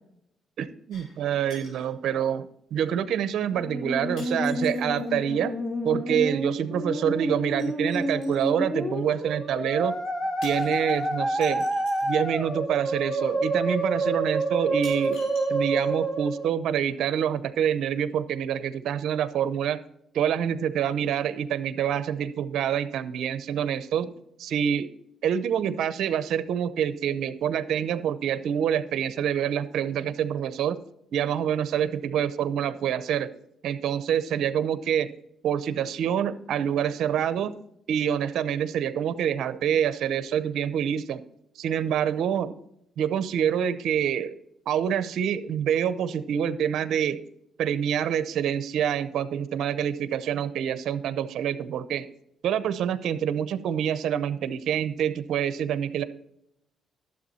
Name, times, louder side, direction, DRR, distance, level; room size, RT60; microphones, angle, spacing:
voice 1, 0.6-2.5 2.7-5.6 5.8-10.0 10.4-11.6 12.0-15.2 15.5-19.8 20.1-24.1 24.4-24.9 25.2-30.8 31.1-33.3 33.6-35.1 35.4-37.5 37.9-41.2 41.6-42.5 43.0-44.4 44.7-47.2 47.6-52.1 52.4-56.0, right 9 dB, 75° right, 13 dB, 0.7 m, -26 dB
sound 1, 0.9-1.2 1.5-1.9 2.9-3.0 4.2-5.1 7.6-8.5 10.4-12.2 13.3-13.4 14.0-14.1 14.8-16.1 16.4-16.5, left 2 dB, 85° left, 4.8 m, -49 dB
Musical instrument, 3.5-16.5, right 1 dB, 15° left, 2.8 m, -28 dB
12.0 x 7.5 x 4.2 m, 0.78 s
cardioid pair, 90°, 0 cm